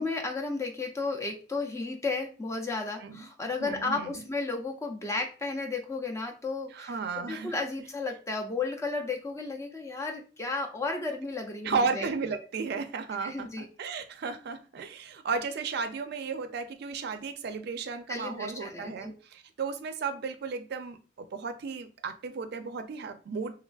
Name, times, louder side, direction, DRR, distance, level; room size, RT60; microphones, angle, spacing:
voice 1, 0.0-12.1 13.2-13.7 18.1-19.2, left 3 dB, 15° left, 0.4 m, -33 dB
voice 2, 3.6-4.2 6.7-7.5 11.6-23.5, right 5 dB, 60° right, 0.4 m, -34 dB
3.2 x 2.3 x 2.3 m
head